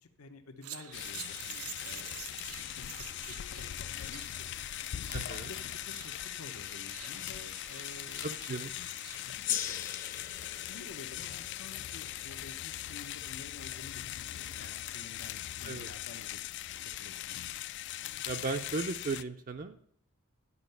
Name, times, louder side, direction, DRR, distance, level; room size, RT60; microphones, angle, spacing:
voice 1, 0.0-4.5 5.4-8.4 9.2-9.9 10.7-16.4 16.8-17.4, left 3 dB, 80° left, 7 dB, 0.8 m, -51 dB
sound 1, 0.6-9.4, right 10 dB, 90° right, 0.7 m, -49 dB
sound 2, 0.9-19.2, left 13 dB, 55° left, 0.3 m, -40 dB
voice 2, 5.1-5.5 8.2-8.7 15.6-15.9 18.3-19.9, right 4 dB, 40° right, 6 dB, 0.4 m, -36 dB
Gong, 9.4-14.2, left 10 dB, 40° left, 0.7 m, -41 dB
11.0 x 5.4 x 6.7 m, 0.65 s
head